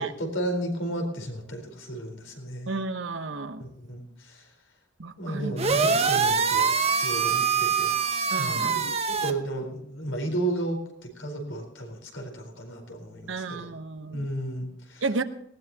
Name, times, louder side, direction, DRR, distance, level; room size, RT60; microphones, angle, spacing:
voice 1, 0.0-2.7 3.6-4.5 5.2-6.7 7.0-7.9 8.3-8.8 9.1-13.7 14.1-15.0, right 1 dB, 85° left, 3 dB, 4.3 m, -33 dB
voice 2, 2.7-3.6 5.0-5.6 8.3-8.9 13.3-14.2 15.0-15.2, right 3 dB, 75° right, 9 dB, 1.0 m, -32 dB
sound 1, 5.6-9.3, right 5 dB, 35° right, 0.9 m, -24 dB
19.0 x 17.0 x 2.9 m, 0.74 s
head